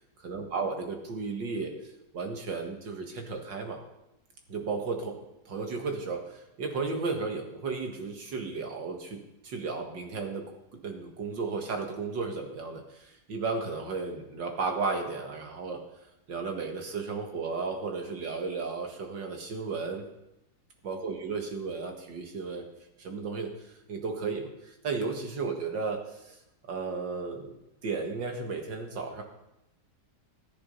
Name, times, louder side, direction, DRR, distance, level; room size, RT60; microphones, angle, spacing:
voice 1, 0.2-1.7 2.1-3.8 4.5-5.2 5.5-10.5 10.7-15.8 16.3-20.1 20.8-22.6 23.0-26.4 26.7-29.2, right 4 dB, 85° right, 3 dB, 2.4 m, -34 dB
13.5 x 11.0 x 5.4 m, 0.87 s
omnidirectional pair, 1.9 m